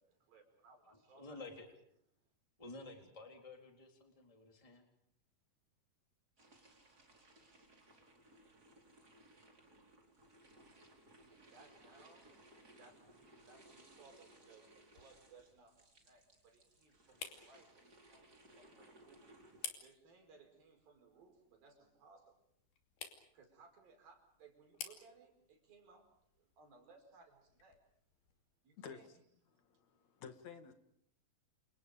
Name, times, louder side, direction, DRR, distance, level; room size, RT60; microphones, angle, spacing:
voice 1, 0.0-1.4 11.5-12.3 12.8-19.2 19.8-22.5 23.3-27.8 28.6-29.1, right 4 dB, 70° right, 4 dB, 6.8 m, -63 dB
voice 2, 1.1-1.7 2.6-4.9, left 2 dB, 10° left, 3 dB, 3.5 m, -52 dB
sound 1, 6.4-19.7, right 1 dB, 25° right, 4.9 m, -63 dB
sound 2, 13.6-28.4, left 7 dB, 85° left, 4.7 m, -56 dB
voice 3, 29.5-30.7, left 7 dB, 50° left, 8 dB, 3.1 m, -52 dB
29.0 x 28.5 x 5.2 m, 0.67 s
omnidirectional pair, 4.3 m